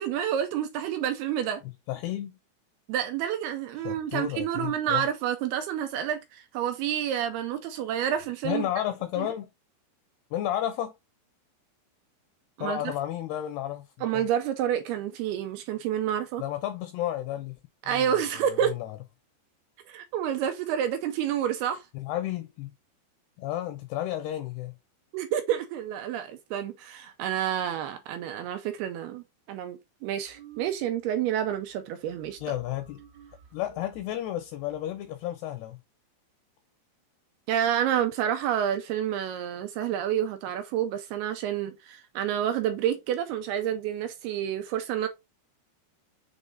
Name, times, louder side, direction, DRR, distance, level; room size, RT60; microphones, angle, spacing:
voice 1, 0.0-1.6 2.9-8.7 9.2-9.3 12.6-12.9 14.0-16.4 17.8-18.8 19.9-21.9 25.1-32.5 37.5-45.1, right 10 dB, 80° right, 2.3 m, -29 dB
voice 2, 1.9-2.4 3.8-5.0 8.4-9.5 10.3-10.9 12.6-13.9 14.1-14.2 16.4-17.6 17.9-18.1 18.5-19.0 21.9-22.7 23.4-24.7 32.4-33.0 33.5-35.8, left 12 dB, 80° left, 2.4 m, -32 dB
sound 1, 30.3-31.2 31.5-35.2, right 9 dB, 50° right, 2.1 m, -53 dB
7.1 x 3.4 x 3.9 m
omnidirectional pair, 5.2 m